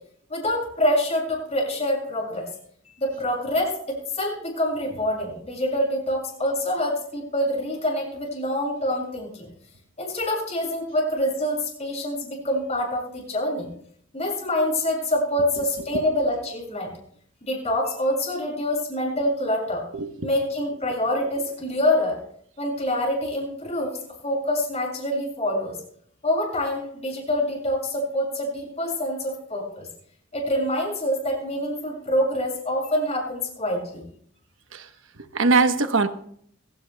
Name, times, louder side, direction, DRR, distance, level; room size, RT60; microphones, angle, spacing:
voice 1, 0.3-2.5 3.0-9.5 10.0-13.7 14.1-16.9 17.4-19.8 20.2-22.2 22.6-24.0 24.2-25.8 26.2-29.9 30.3-34.0, left 1 dB, 35° left, -1 dB, 6.5 m, -26 dB
voice 2, 19.9-20.3 34.7-34.9 35.3-36.1, right 3 dB, 75° right, 8 dB, 1.0 m, -21 dB
22.5 x 16.0 x 2.3 m, 0.65 s
head